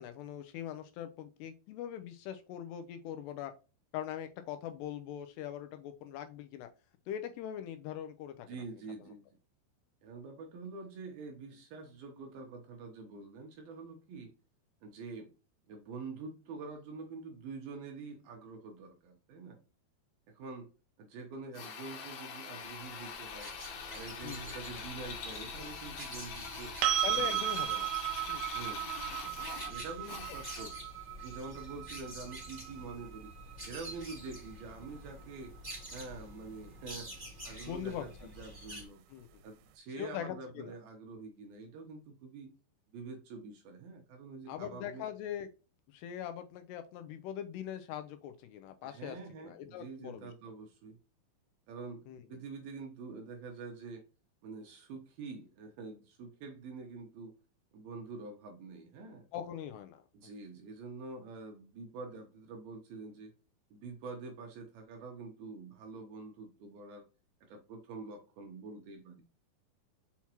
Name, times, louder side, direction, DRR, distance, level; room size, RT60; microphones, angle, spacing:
voice 1, 0.0-3.5 3.9-6.7 7.1-8.5 9.0-9.1 24.2-24.6 27.0-27.9 28.3-28.4 37.7-38.1 39.1-39.4 40.0-40.8 44.5-45.5 45.9-50.3 52.1-52.2 59.3-60.0, left 10 dB, 85° left, 7 dB, 2.5 m, -41 dB
voice 2, 8.5-9.2 10.0-14.3 14.8-15.3 15.7-19.6 20.3-20.7 21.0-23.5 23.9-26.7 27.2-27.4 28.5-28.9 29.7-30.8 31.2-33.3 33.6-35.5 35.9-39.0 39.4-42.5 42.9-45.1 48.8-51.0 51.7-52.0 52.3-54.0 54.4-57.3 57.7-59.3 60.1-63.3 63.7-67.0 67.4-69.2, right 4 dB, 75° right, 3 dB, 2.4 m, -46 dB
Drill, 21.5-30.8, left 6 dB, 65° left, 2.9 m, -44 dB
sound 1, 22.9-38.8, right 1 dB, 10° right, 2.1 m, -48 dB
sound 2, 26.8-34.6 37.5-37.6, right 13 dB, 90° right, 2.9 m, -36 dB
5.9 x 5.7 x 2.9 m, 0.33 s
omnidirectional pair, 5.2 m